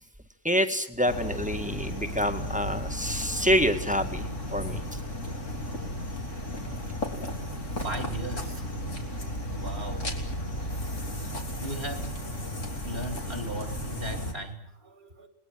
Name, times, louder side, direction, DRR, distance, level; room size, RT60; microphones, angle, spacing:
voice 1, 0.4-5.0, equal, 5° right, 2.0 m, -27 dB
sound 1, 1.1-14.3, equal, 75° left, 3.6 m, -34 dB
voice 2, 7.8-8.6 9.5-10.1 11.6-12.2 12.8-15.3, right 1 dB, 55° right, 3.1 m, -37 dB
29.0 x 21.0 x 7.7 m
omnidirectional pair, 1.3 m